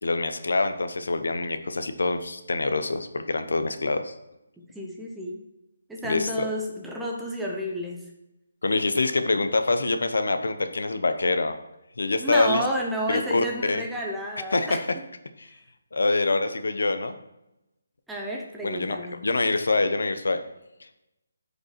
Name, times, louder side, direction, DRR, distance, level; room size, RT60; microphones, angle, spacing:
voice 1, 0.0-4.1 6.0-6.5 8.6-11.6 12.0-12.6 13.1-13.8 14.5-14.8 15.4-15.5 15.9-17.2 18.6-19.0 19.2-20.4, left 3 dB, 85° left, 8 dB, 0.9 m, -25 dB
voice 2, 4.7-5.4 5.9-8.0 12.2-14.8 18.1-19.2, equal, ahead, -2 dB, 0.6 m, -31 dB
13.0 x 5.2 x 3.2 m, 0.91 s
hypercardioid pair, 175°, 0 cm